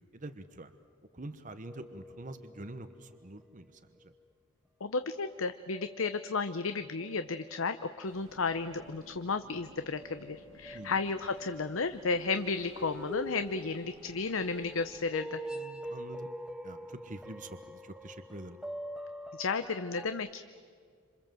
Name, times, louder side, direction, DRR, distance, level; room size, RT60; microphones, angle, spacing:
voice 1, 0.1-0.7 1.1-4.1 10.7-11.0 15.5-16.3 16.6-18.6, right 2 dB, 40° right, 9 dB, 1.0 m, -46 dB
sound 1, 1.6-3.4 4.0-4.1 5.2-20.1, right 1 dB, 5° right, 0.8 m, -46 dB
voice 2, 4.8-15.4 19.4-20.4, left 4 dB, 70° left, 10 dB, 0.8 m, -33 dB
sound 2, 8.0-15.1, right 1 dB, 60° right, 2.4 m, -56 dB
27.5 x 27.0 x 7.6 m, 2.1 s
head